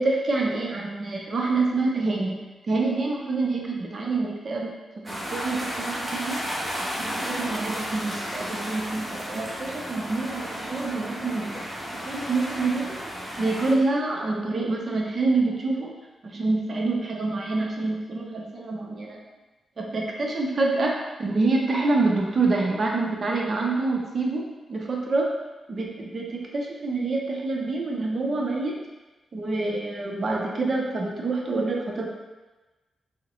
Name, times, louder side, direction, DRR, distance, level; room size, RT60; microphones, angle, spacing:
voice 1, 0.0-2.3 2.7-4.8 5.0-6.4 6.8-11.7 11.9-13.0 13.4-15.9 16.2-19.2 19.8-25.3 25.7-28.7 29.3-32.1, right 3 dB, 50° right, -1 dB, 0.6 m, -26 dB
sound 1, 5.0-13.7, equal, 30° right, 1.3 m, -33 dB
3.5 x 2.1 x 3.0 m, 1.1 s
supercardioid pair, 50°, 0 cm